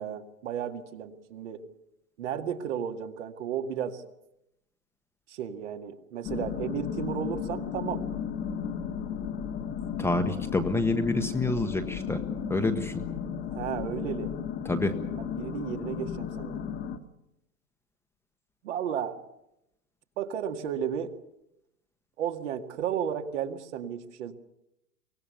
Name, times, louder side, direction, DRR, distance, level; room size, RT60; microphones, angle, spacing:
voice 1, 0.0-1.6 2.2-4.0 5.3-8.1 13.5-14.3 15.2-16.6 18.6-19.2 20.2-21.1 22.2-24.3, right 9 dB, 60° right, 6 dB, 2.0 m, -33 dB
sound 1, 6.2-17.0, left 8 dB, 25° left, 1.4 m, -34 dB
voice 2, 10.0-12.2 12.5-13.0 14.6-14.9, left 2 dB, 5° left, 6 dB, 1.1 m, -28 dB
24.0 x 18.5 x 6.9 m, 0.85 s
hypercardioid pair, 120°, 42 cm